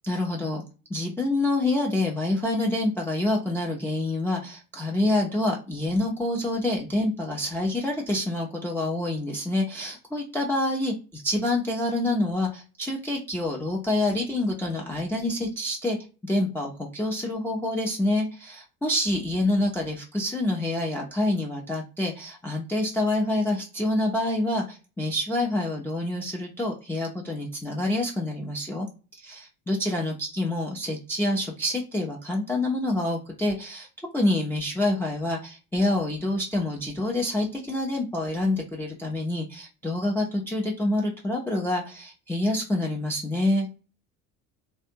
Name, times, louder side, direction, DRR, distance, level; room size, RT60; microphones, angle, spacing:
voice 1, 0.0-0.6 0.9-16.0 16.2-28.9 29.1-33.9 34.1-43.7, left 1 dB, 5° left, -1 dB, 0.4 m, -27 dB
2.5 x 2.2 x 2.5 m, 0.33 s
figure-of-eight pair, 65°, 42 cm